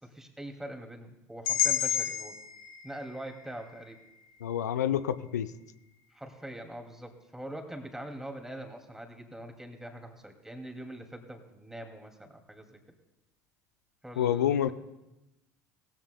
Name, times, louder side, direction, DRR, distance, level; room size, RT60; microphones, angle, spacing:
voice 1, 0.0-2.4 2.8-4.0 6.1-12.8 14.0-14.7, right 1 dB, 5° right, 4 dB, 2.4 m, -43 dB
sound 1, 1.5-5.5, left 9 dB, 60° left, 1.4 m, -33 dB
voice 2, 4.4-5.5 14.2-14.7, left 10 dB, 80° left, 13 dB, 0.5 m, -28 dB
19.5 x 15.0 x 2.2 m, 0.96 s
figure-of-eight pair, 65°, 9 cm